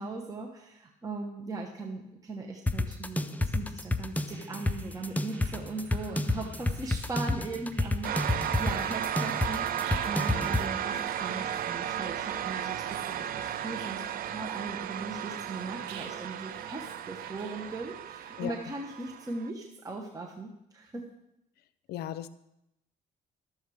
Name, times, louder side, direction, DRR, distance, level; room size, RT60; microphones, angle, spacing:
voice 1, 0.0-21.0, right 3 dB, 20° right, 0 dB, 1.1 m, -39 dB
sound 1, 2.7-10.7, left 2 dB, 10° left, 0.5 m, -29 dB
sound 2, 4.3-18.3, right 7 dB, 85° right, 1.1 m, -53 dB
sound 3, 8.0-19.5, right 10 dB, 60° right, 0.6 m, -34 dB
voice 2, 21.9-22.3, left 12 dB, 70° left, 15 dB, 0.5 m, -35 dB
12.0 x 7.2 x 4.8 m, 0.85 s
cardioid pair, 110°, 17 cm